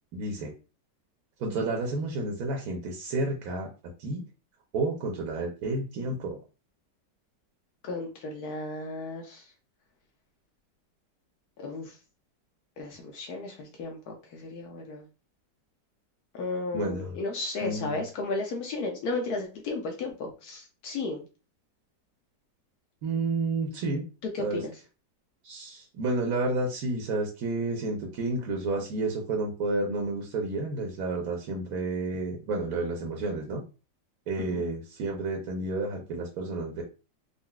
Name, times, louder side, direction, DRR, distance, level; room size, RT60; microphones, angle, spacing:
voice 1, 0.1-0.5 1.4-3.7 4.0-4.2 4.7-6.4 16.7-17.2 17.6-18.0 23.0-24.0 24.4-24.6 25.4-33.6 34.3-36.8, right 2 dB, 65° right, 0 dB, 1.1 m, -30 dB
voice 2, 7.8-9.4 11.6-12.0 12.8-15.0 16.3-21.2 24.3-24.7 34.4-34.6, left 3 dB, 65° left, 2 dB, 1.1 m, -34 dB
3.8 x 2.4 x 2.3 m, 0.32 s
omnidirectional pair, 1.9 m